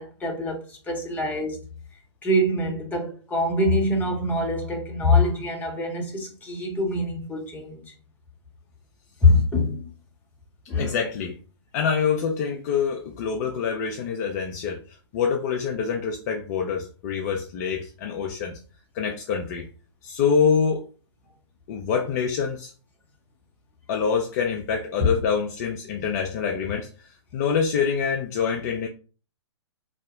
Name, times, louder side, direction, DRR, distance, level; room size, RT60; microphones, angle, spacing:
voice 1, 0.0-1.6 2.2-7.9 9.2-9.9 10.7-11.0, left 2 dB, 10° left, 0.8 m, -24 dB
voice 2, 10.8-11.4 11.7-18.6 18.9-19.7 20.0-20.8 21.7-22.7 23.9-28.9, left 6 dB, 35° left, 0.4 m, -26 dB
2.8 x 2.0 x 3.6 m
figure-of-eight pair, 120°, 15 cm